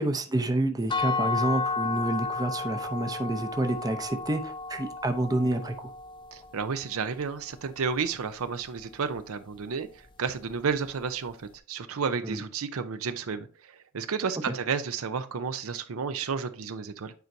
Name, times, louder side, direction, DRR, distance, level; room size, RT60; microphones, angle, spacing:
voice 1, 0.0-5.9 12.2-12.4 14.5-14.6, right 1 dB, 15° right, 0.6 m, -28 dB
sound 1, 0.9-6.7, left 4 dB, 20° left, 0.5 m, -32 dB
voice 2, 6.3-9.9 10.2-17.1, right 5 dB, 70° right, 0.5 m, -32 dB
9.3 x 4.5 x 2.7 m
head